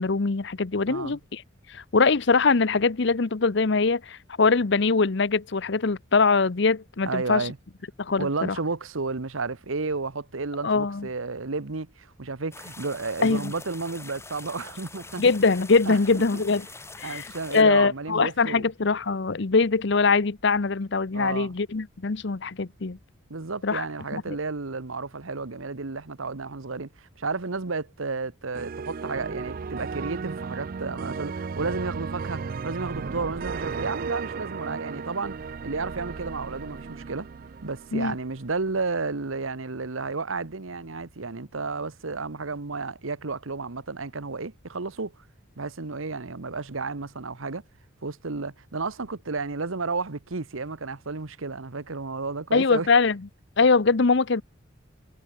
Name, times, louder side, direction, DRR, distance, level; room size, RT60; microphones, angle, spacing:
voice 1, 0.0-1.4 1.7-7.5 8.0-8.6 10.6-11.1 13.2-13.5 15.2-16.7 17.0-23.0 23.6-23.8 24.1-24.4 37.9-38.1 52.5-53.3 53.6-54.4, left 4 dB, 60° left, 0.7 m, -22 dB
voice 2, 0.9-1.2 7.0-7.6 8.2-15.2 15.9-16.0 16.3-16.4 17.0-18.7 21.1-21.5 23.3-37.3 37.6-45.1 45.6-47.6 48.0-52.9, right 3 dB, 80° right, 1.2 m, -32 dB
sound 1, 12.5-17.6, left 3 dB, 15° left, 5.0 m, -44 dB
sound 2, 28.5-38.6, right 5 dB, 45° right, 0.4 m, -35 dB
head